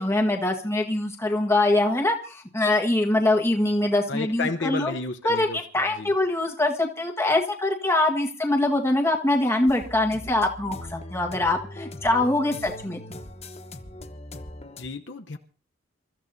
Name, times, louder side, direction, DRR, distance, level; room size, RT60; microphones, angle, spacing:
voice 1, 0.0-4.9 5.2-13.2, left 2 dB, 15° left, 1.6 m, -23 dB
voice 2, 4.1-5.6 6.0-6.1 14.8-15.4, left 4 dB, 65° left, 1.0 m, -31 dB
sound 1, 9.7-14.9, left 1 dB, 35° left, 1.2 m, -40 dB
28.0 x 14.0 x 2.8 m
head